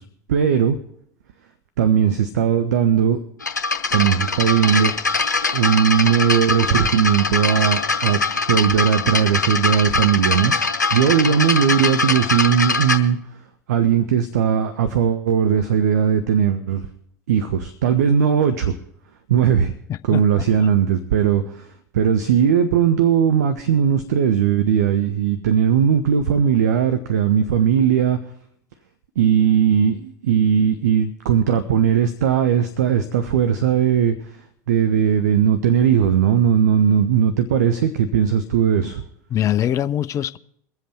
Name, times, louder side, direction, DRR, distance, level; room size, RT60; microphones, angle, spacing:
voice 1, 0.3-0.8 1.8-3.2 3.9-4.9 5.5-8.2 8.5-10.5 10.9-13.2 13.7-16.9 17.3-18.8 19.3-19.7 20.0-21.7 21.9-28.2 29.2-34.2 34.7-39.0, right 8 dB, 70° right, 0.8 m, -18 dB
sound 1, 3.4-13.0, left 4 dB, 85° left, 0.9 m, -22 dB
voice 2, 19.9-20.7 39.3-40.4, left 11 dB, 35° left, 0.5 m, -23 dB
23.0 x 7.8 x 4.4 m
figure-of-eight pair, 80°, 9 cm